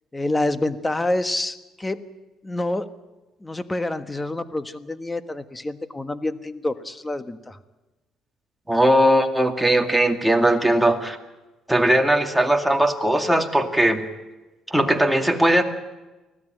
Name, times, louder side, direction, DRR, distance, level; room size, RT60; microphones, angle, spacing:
voice 1, 0.1-2.0 2.4-2.9 3.4-7.6, left 2 dB, 15° left, 11 dB, 1.4 m, -27 dB
voice 2, 8.7-11.2 11.7-14.0 14.7-15.6, right 1 dB, 5° right, 4 dB, 2.3 m, -19 dB
25.0 x 16.5 x 9.1 m, 1.1 s
cardioid pair, 115°, 0 cm